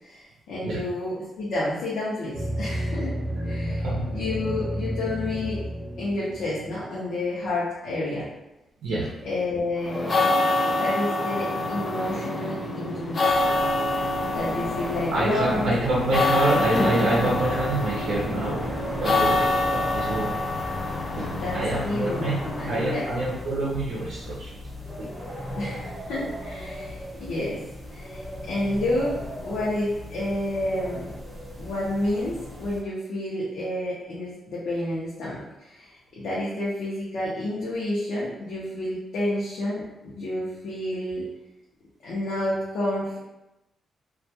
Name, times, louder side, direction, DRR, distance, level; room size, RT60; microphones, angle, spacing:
voice 1, 0.0-3.2 3.4-5.6 6.0-8.3 9.2-10.2 10.7-13.5 14.3-15.8 21.2-21.6 21.8-23.1 25.5-27.6 27.9-29.1 29.4-31.1 31.6-41.2 42.0-43.2, left 1 dB, 85° left, -8 dB, 0.6 m, -30 dB
sound 1, 2.3-7.1, equal, 45° right, 0.5 m, -31 dB
voice 2, 3.4-4.0 8.8-9.1 15.1-18.6 18.9-20.4 21.2-22.4 22.7-24.6 25.0-25.1, right 2 dB, 90° right, -5 dB, 0.6 m, -27 dB
sound 2, 9.9-23.4, left 2 dB, 30° left, 0.3 m, -26 dB
sound 3, 13.3-32.8, equal, 5° right, 0.7 m, -37 dB
2.3 x 2.2 x 2.7 m, 0.94 s
wide cardioid pair, 155°, 0 cm